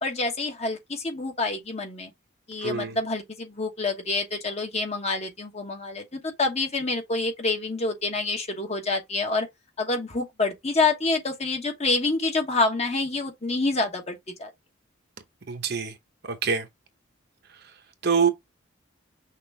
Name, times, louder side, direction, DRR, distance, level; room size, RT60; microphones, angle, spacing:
voice 1, 0.0-2.1 2.5-9.5 9.8-14.5, left 3 dB, 30° left, 1.0 m, -27 dB
voice 2, 2.6-3.0 15.5-15.9 16.2-16.7 18.0-18.3, right 6 dB, 50° right, 0.8 m, -25 dB
5.9 x 2.5 x 3.3 m
head